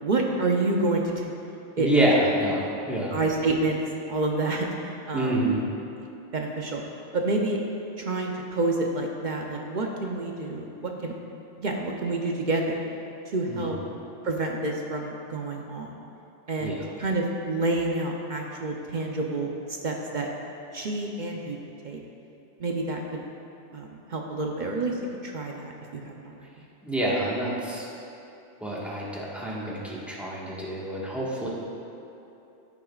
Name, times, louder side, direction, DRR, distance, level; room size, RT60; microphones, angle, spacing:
voice 1, 0.0-1.2 1.8-1.9 3.1-3.8 4.1-4.7 5.1-5.4 6.3-6.8 7.1-7.6 8.0-11.1 11.6-12.8 13.3-13.8 14.2-16.0 16.5-20.3 20.7-21.6 21.8-22.0 22.6-23.2 23.7-24.9 25.2-26.5, right 2 dB, 50° right, 1 dB, 0.7 m, -28 dB
voice 2, 1.8-3.1 5.1-5.6 13.5-13.8 16.6-16.8 26.8-27.9 28.6-31.5, right 1 dB, ahead, -6 dB, 1.3 m, -27 dB
14.5 x 6.8 x 2.4 m, 2.9 s
omnidirectional pair, 1.2 m